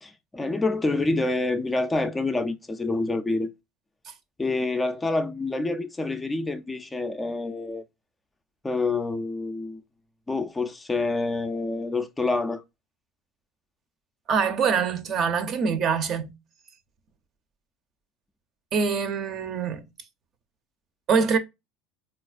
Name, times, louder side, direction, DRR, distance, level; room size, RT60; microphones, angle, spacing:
voice 1, 0.0-3.5 4.4-7.8 8.6-9.8 10.3-12.6, left 3 dB, 15° left, 0.3 m, -27 dB
voice 2, 14.3-16.3 18.7-19.9 21.1-21.4, right 6 dB, 45° right, 0.6 m, -24 dB
4.0 x 2.3 x 2.3 m
supercardioid pair, 110°, 0 cm